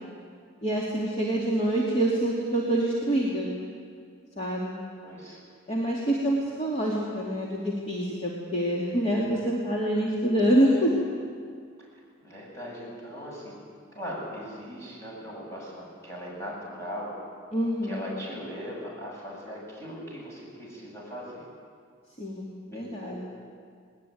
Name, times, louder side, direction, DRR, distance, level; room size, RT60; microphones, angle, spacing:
voice 1, 0.6-3.5 4.4-4.7 5.7-10.9 17.5-18.0 22.2-22.5 22.7-23.2, right 1 dB, 35° left, -4 dB, 2.8 m, -26 dB
voice 2, 5.0-5.4 11.9-13.5 13.9-17.1 17.8-21.4 22.7-23.2, equal, 15° left, -4 dB, 7.8 m, -39 dB
20.5 x 20.0 x 9.4 m, 2.2 s
head